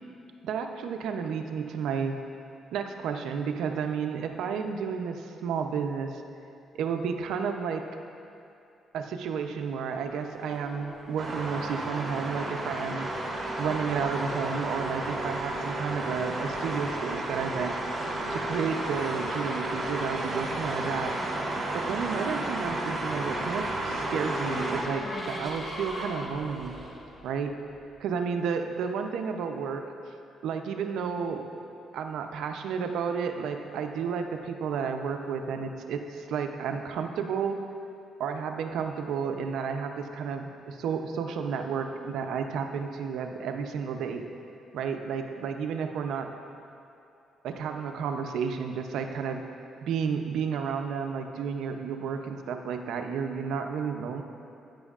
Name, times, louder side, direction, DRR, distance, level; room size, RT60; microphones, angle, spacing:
voice 1, 0.4-2.1 2.7-6.2 6.8-7.8 8.9-13.1 13.6-17.7 18.3-21.1 21.7-26.8 27.2-27.5 28.0-30.1 30.4-31.4 31.9-37.6 38.2-44.2 44.7-46.3 47.4-49.4 49.8-54.2, right 6 dB, 80° right, 5 dB, 0.6 m, -32 dB
Race car auto racing / Accelerating revving vroom, 9.8-28.0, left 1 dB, 30° left, 1.6 m, -40 dB
sound 1, 11.2-24.8, right 2 dB, 35° right, 1.7 m, -33 dB
12.5 x 9.0 x 2.5 m, 2.6 s
cardioid pair, 90°, 0 cm